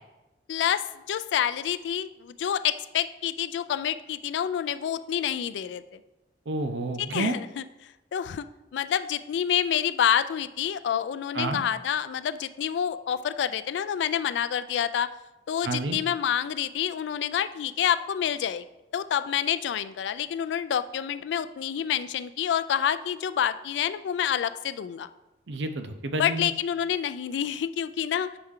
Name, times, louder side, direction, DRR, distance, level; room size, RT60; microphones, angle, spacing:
voice 1, 0.5-6.0 7.0-8.5 8.7-15.1 15.5-18.6 18.9-25.1 26.2-28.4, left 9 dB, 80° left, 13 dB, 0.3 m, -28 dB
voice 2, 6.5-7.4 11.3-11.6 15.6-16.0 25.5-26.5, right 2 dB, 85° right, 7 dB, 0.6 m, -30 dB
6.8 x 4.3 x 3.7 m, 1.0 s
head